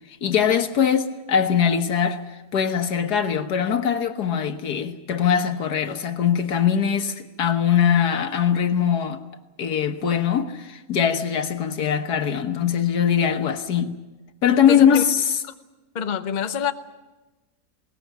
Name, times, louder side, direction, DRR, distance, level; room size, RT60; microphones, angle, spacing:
voice 1, 0.2-2.2 2.5-9.2 9.6-14.0 14.4-15.4, left 8 dB, 85° left, 1.8 m, -21 dB
voice 2, 14.7-15.0 15.9-16.7, left 7 dB, 35° left, 0.8 m, -26 dB
20.5 x 19.0 x 9.3 m
omnidirectional pair, 1.7 m